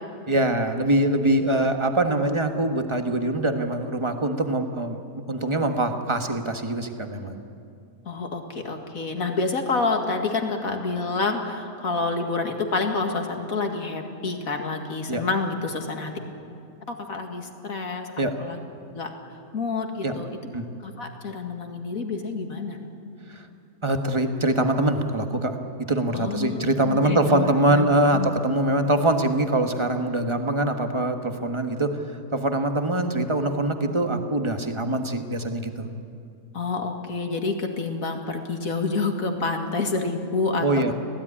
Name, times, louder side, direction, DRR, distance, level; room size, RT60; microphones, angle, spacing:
voice 1, 0.3-7.3 15.1-15.2 18.2-18.4 20.0-20.2 20.5-20.7 23.3-23.4 23.8-32.0 32.3-35.9 40.6-40.9, right 1 dB, 20° right, 6 dB, 1.5 m, -23 dB
voice 2, 8.1-16.1 16.9-18.1 18.4-18.6 18.9-19.1 19.5-20.3 20.8-22.8 26.1-28.3 36.5-40.7, left 3 dB, 65° left, 4 dB, 2.5 m, -28 dB
25.0 x 17.0 x 10.0 m, 2.5 s
omnidirectional pair, 1.6 m